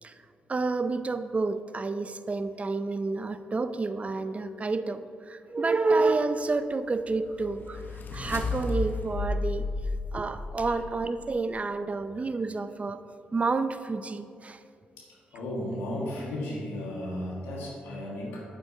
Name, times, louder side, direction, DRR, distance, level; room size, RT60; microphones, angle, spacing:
voice 1, 0.5-9.7 10.1-13.0 13.3-14.6, right 3 dB, 35° right, 11 dB, 0.5 m, -29 dB
sound 1, 6.8-11.1, left 3 dB, 55° left, 0.9 m, -33 dB
voice 2, 15.3-18.4, left 1 dB, 85° left, -4 dB, 1.6 m, -34 dB
8.8 x 7.6 x 2.7 m, 2.3 s
supercardioid pair, 50°, 4 cm